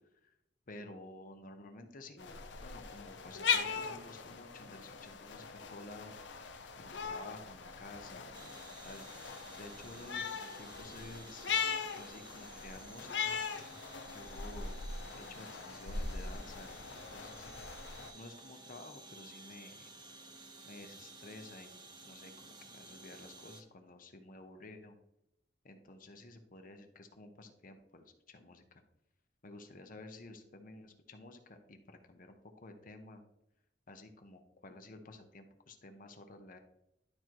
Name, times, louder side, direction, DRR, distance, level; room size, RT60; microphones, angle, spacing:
voice 1, 0.7-6.1 6.8-9.0 9.6-11.5 12.0-13.4 14.0-17.6 18.1-19.9 20.7-25.0 25.6-28.8 29.4-33.2 33.9-36.6, left 2 dB, 50° left, 6 dB, 0.9 m, -52 dB
sound 1, 2.2-18.1, left 5 dB, 75° left, 0.7 m, -40 dB
sound 2, 8.3-23.6, right 2 dB, 25° right, 0.9 m, -54 dB
11.5 x 4.5 x 3.0 m, 0.86 s
head